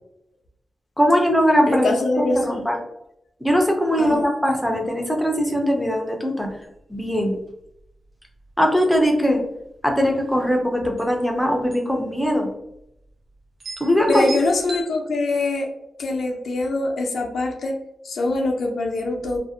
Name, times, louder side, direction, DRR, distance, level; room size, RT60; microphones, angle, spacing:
voice 1, 1.0-2.8 3.4-6.5 6.9-7.4 8.6-9.4 9.8-12.5 13.8-14.3, equal, ahead, 1 dB, 0.4 m, -20 dB
voice 2, 1.7-2.6 4.0-4.2 14.1-15.7 16.0-17.7 18.0-19.4, left 2 dB, 70° left, 1 dB, 0.4 m, -23 dB
sound 1, 6.5-6.6 6.9-7.0 7.5-7.8 8.4-8.6 8.9-9.6 10.6-10.7 11.0-11.1 11.7-12.0 12.3-12.4 13.1-13.2 13.6-14.9, right 2 dB, 55° right, 0.5 m, -36 dB
2.4 x 2.0 x 2.6 m, 0.80 s
wide cardioid pair, 165°, 0 cm